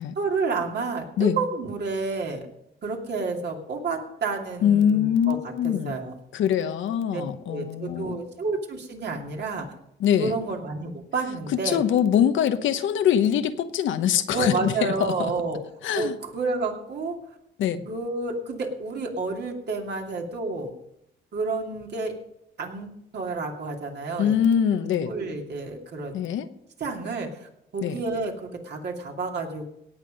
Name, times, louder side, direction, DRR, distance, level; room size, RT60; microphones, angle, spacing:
voice 1, 0.2-2.5 2.8-5.4 5.6-6.1 7.1-7.2 7.5-9.7 10.2-11.8 14.3-15.6 15.9-17.2 17.9-20.7 21.3-22.1 22.6-22.9 23.1-24.4 25.1-26.2 26.8-29.7, right 3 dB, 55° right, 1 dB, 2.7 m, -30 dB
voice 2, 4.6-6.0 6.3-8.2 10.0-10.3 11.6-15.3 15.8-16.2 17.6-17.8 24.2-25.1 26.1-26.5 27.8-28.0, left 9 dB, 75° left, 10 dB, 1.0 m, -23 dB
17.5 x 7.4 x 5.2 m, 0.78 s
cardioid pair, 90°, 20 cm